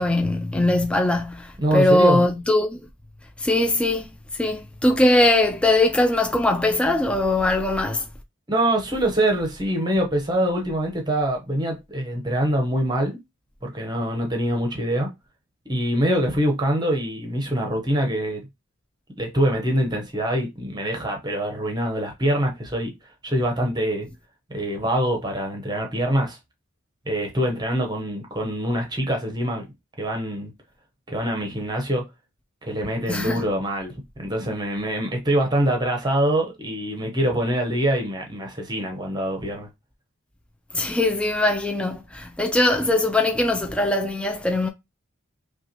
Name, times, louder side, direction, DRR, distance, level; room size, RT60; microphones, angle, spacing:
voice 1, 0.0-2.8 3.4-4.1 4.4-8.0 33.1-33.4 40.7-44.7, left 1 dB, 5° left, 0.3 m, -21 dB
voice 2, 1.6-2.3 8.5-13.2 13.6-15.1 15.7-18.4 19.2-22.9 23.2-24.1 24.5-26.4 27.1-29.7 30.0-30.5 31.1-32.0 32.6-39.7, right 1 dB, 20° right, 0.9 m, -24 dB
5.5 x 2.3 x 2.9 m
head